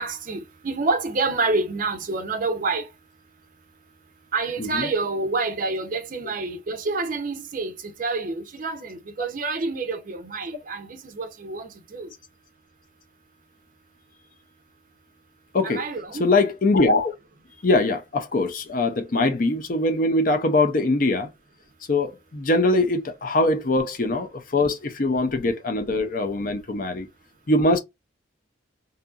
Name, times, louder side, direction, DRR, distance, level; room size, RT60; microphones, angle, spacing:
voice 1, 0.0-2.9 4.3-7.7 8.0-12.1 15.6-16.3, right 3 dB, 45° right, 0.5 m, -28 dB
voice 2, 15.5-15.8 16.2-17.1 17.6-21.3 21.9-27.1 27.5-27.8, left 2 dB, 45° left, 0.5 m, -22 dB
2.7 x 2.5 x 2.2 m
head